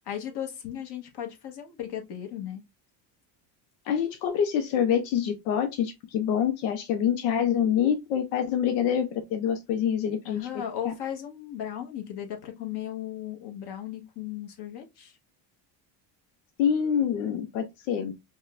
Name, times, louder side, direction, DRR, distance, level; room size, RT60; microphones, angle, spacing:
voice 1, 0.0-2.6 10.2-15.2, left 10 dB, 55° left, 1.2 m, -36 dB
voice 2, 3.9-10.5 10.8-10.9 16.6-18.1, left 8 dB, 90° left, 0.7 m, -26 dB
5.3 x 2.2 x 2.4 m
supercardioid pair, 95°, 49 cm